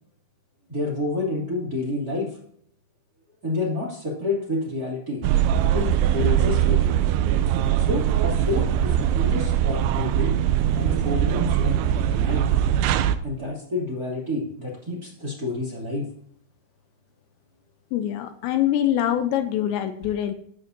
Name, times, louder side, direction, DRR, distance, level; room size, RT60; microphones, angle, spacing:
voice 1, 0.7-2.4 3.4-5.2 5.7-6.9 7.8-10.3 10.7-12.4 13.2-16.0, left 2 dB, 25° right, -3 dB, 2.8 m, -29 dB
sound 1, 5.2-13.2, right 10 dB, 90° right, 2.3 m, -21 dB
voice 2, 17.9-20.3, left 11 dB, 80° left, 8 dB, 3.0 m, -24 dB
14.0 x 12.0 x 2.8 m, 0.66 s
omnidirectional pair, 5.3 m